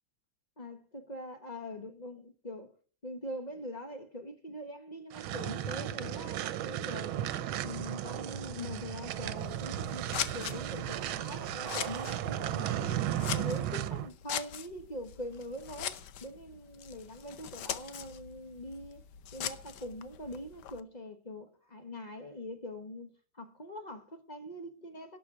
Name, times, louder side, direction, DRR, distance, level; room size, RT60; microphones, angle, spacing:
voice 1, 0.6-2.7 3.0-7.2 7.6-10.1 10.3-13.0 13.3-19.0 19.3-25.2, left 1 dB, 30° left, 0.9 m, -43 dB
sound 1, 5.1-14.1, right 11 dB, 85° right, 1.5 m, -35 dB
Scissors, 9.4-20.8, left 10 dB, 65° left, 1.3 m, -42 dB
11.5 x 6.2 x 8.5 m
omnidirectional pair, 2.2 m